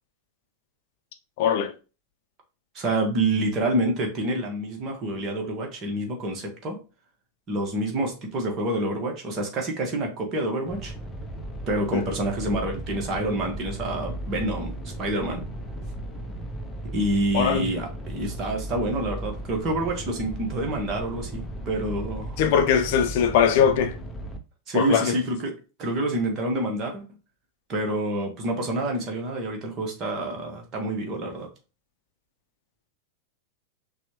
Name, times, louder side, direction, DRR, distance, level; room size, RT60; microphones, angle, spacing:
voice 1, 1.4-1.7 11.9-12.0 17.3-17.7 22.4-23.9 24.7-25.2, left 8 dB, 50° left, 0.8 m, -21 dB
voice 2, 2.7-6.8 7.5-10.9 11.7-15.4 16.9-22.4 24.7-27.0 27.7-31.5, right 1 dB, 30° right, 1.5 m, -27 dB
sound 1, 10.7-24.4, right 1 dB, 10° left, 0.8 m, -36 dB
5.9 x 2.5 x 3.1 m
figure-of-eight pair, 90°, 0 cm